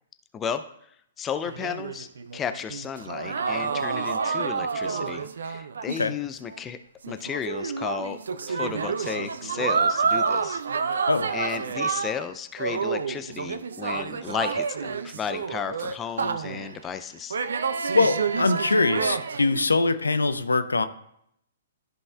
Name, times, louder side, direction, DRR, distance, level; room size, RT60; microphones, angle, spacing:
voice 1, 1.2-6.8 7.1-8.2 8.5-10.6 11.3-17.4, left 7 dB, 20° left, 10 dB, 0.4 m, -33 dB
sound 1, 1.4-6.2 6.5-6.6 7.0-12.3 12.6-16.8 17.3-19.7, right 5 dB, 65° right, 0.5 m, -29 dB
voice 2, 17.9-20.9, left 3 dB, 80° left, 11 dB, 0.6 m, -23 dB
13.5 x 5.4 x 2.3 m, 0.73 s
figure-of-eight pair, 115°, 0 cm